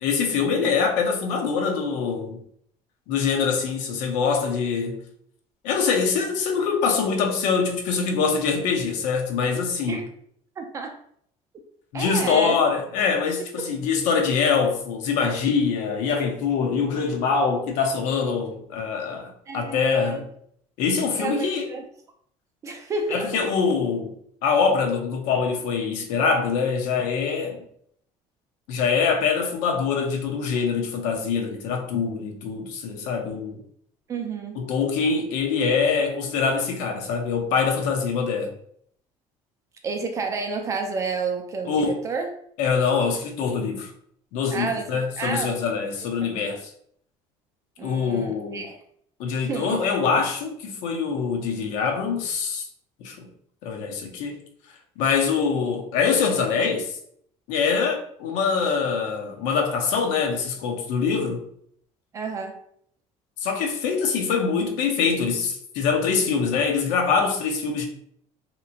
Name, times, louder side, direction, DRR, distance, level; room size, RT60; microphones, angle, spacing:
voice 1, 0.0-2.4 3.1-5.0 5.6-10.0 11.9-20.3 20.8-21.7 23.1-24.1 24.4-27.6 28.7-33.6 34.6-38.5 41.7-42.0 42.6-43.9 44.3-46.7 47.8-48.7 49.2-52.6 53.0-53.3 53.6-54.4 55.0-57.0 57.5-61.4 63.4-67.9, left 5 dB, 80° left, 0.6 m, -24 dB
voice 2, 10.6-11.0 11.9-12.6 19.5-20.2 21.1-21.9 22.6-23.5 34.1-34.6 39.8-42.3 44.5-45.6 47.8-48.8 49.3-49.9 62.1-62.6, right 4 dB, 25° right, 0.3 m, -30 dB
2.9 x 2.7 x 2.4 m
cardioid pair, 170°, 13 cm